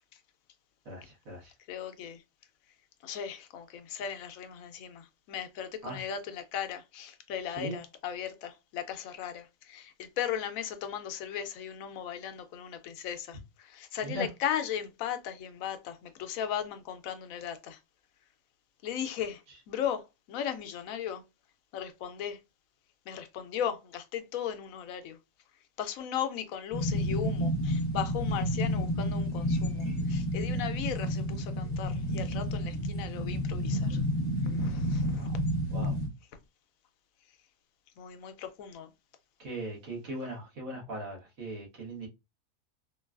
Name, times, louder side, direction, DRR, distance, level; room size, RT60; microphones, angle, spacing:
voice 1, 0.8-1.5 5.8-6.0 7.6-7.7 14.0-14.3 35.1-35.4 35.7-36.0 39.4-42.1, right 1 dB, 80° right, 1.8 m, -39 dB
voice 2, 1.7-2.2 3.0-17.8 18.8-19.4 19.7-21.2 21.7-22.4 23.1-25.2 25.8-34.0 34.4-35.3 38.0-38.9, left 9 dB, 85° left, 1.0 m, -37 dB
sound 1, 26.7-36.1, equal, 50° left, 1.0 m, -30 dB
3.8 x 2.2 x 2.3 m
omnidirectional pair, 1.4 m